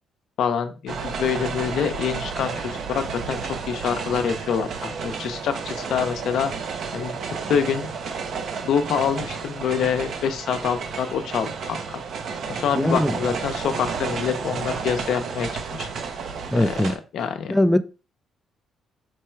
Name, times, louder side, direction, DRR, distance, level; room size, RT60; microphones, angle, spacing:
voice 1, 0.4-6.5 6.9-7.9 8.6-12.0 12.5-15.9 16.5-17.6, left 7 dB, 75° left, 8 dB, 0.6 m, -26 dB
sound 1, 0.9-17.0, right 5 dB, 65° right, 0.7 m, -32 dB
voice 2, 12.7-13.2 16.5-16.9 17.5-17.8, left 1 dB, 5° left, 11 dB, 0.3 m, -20 dB
4.6 x 2.3 x 4.3 m, 0.32 s
cardioid pair, 90°, 0 cm